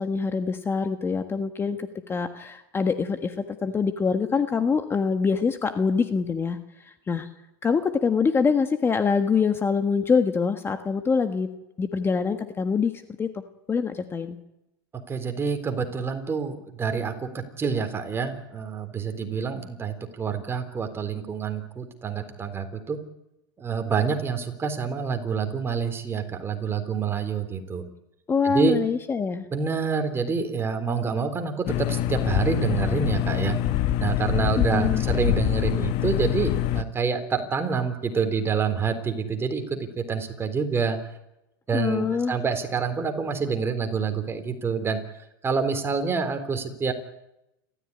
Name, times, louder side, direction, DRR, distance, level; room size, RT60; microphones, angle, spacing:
voice 1, 0.0-3.3 3.6-6.6 7.1-7.3 7.6-11.5 11.8-12.9 13.2-13.3 13.7-14.4 28.3-29.5 34.6-35.0 41.7-42.4, left 5 dB, 20° left, 8 dB, 1.5 m, -24 dB
voice 2, 15.1-23.0 23.6-27.8 28.4-28.8 29.5-33.6 34.0-41.0 41.7-45.0 45.4-46.9, right 5 dB, 20° right, 7 dB, 3.9 m, -27 dB
sound 1, 31.7-36.8, left 12 dB, 50° left, 1.6 m, -25 dB
29.0 x 14.0 x 9.8 m, 0.89 s
hypercardioid pair, 110°, 12 cm